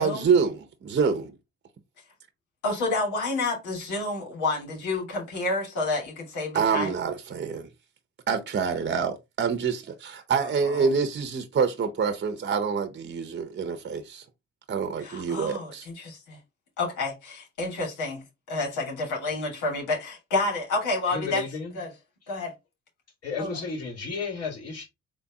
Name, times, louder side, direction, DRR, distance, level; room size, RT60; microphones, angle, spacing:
voice 1, 0.0-1.4 6.5-7.7 8.3-14.2 14.7-15.9, right 5 dB, 35° right, 0.9 m, -26 dB
voice 2, 2.6-7.0 10.6-10.9 15.0-16.4 16.8-18.2 18.5-21.4 21.7-21.9 22.3-22.5 23.4-23.5, left 2 dB, 80° left, 2.7 m, -29 dB
voice 3, 21.1-21.8 23.2-24.9, left 4 dB, 55° left, 2.7 m, -33 dB
4.2 x 3.4 x 3.6 m
cardioid pair, 90°, 30 cm